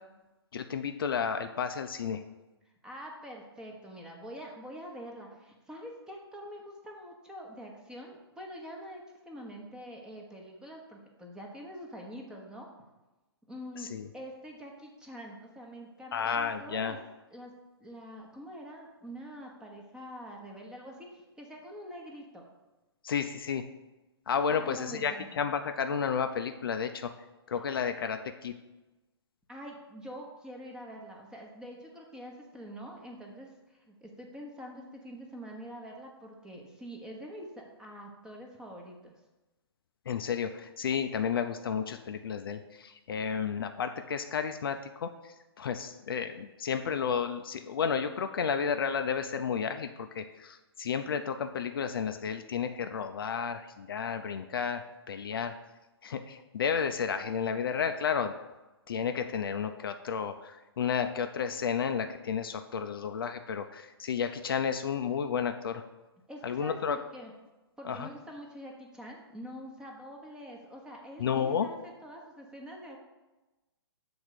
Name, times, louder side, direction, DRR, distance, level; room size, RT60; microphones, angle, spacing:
voice 1, 0.5-2.2 13.8-14.1 16.1-17.0 23.0-23.6 24.3-27.1 27.5-28.5 40.1-55.5 56.0-58.3 58.9-65.8 66.4-67.0 67.8-68.1 71.2-71.7, left 7 dB, 55° left, 7 dB, 0.5 m, -32 dB
voice 2, 2.8-12.7 13.5-17.0 17.3-17.5 17.8-22.5 24.5-25.4 29.5-39.1 66.3-67.3 67.8-73.0, equal, 5° right, 0 dB, 1.0 m, -45 dB
7.1 x 3.9 x 6.5 m, 1.1 s
figure-of-eight pair, 125°, 14 cm